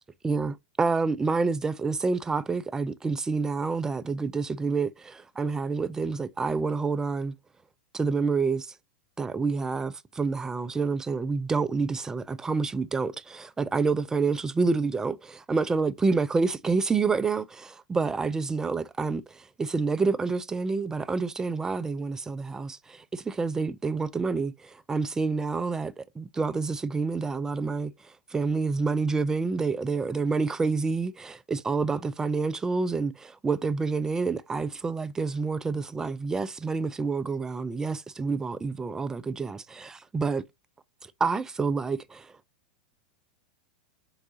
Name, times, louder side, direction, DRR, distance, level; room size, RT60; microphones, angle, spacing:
voice 1, 0.2-7.3 7.9-8.7 9.2-27.9 28.3-40.4 41.2-42.3, right 4 dB, 15° right, 0.4 m, -28 dB
4.6 x 3.9 x 2.7 m
hypercardioid pair, 105°, 4 cm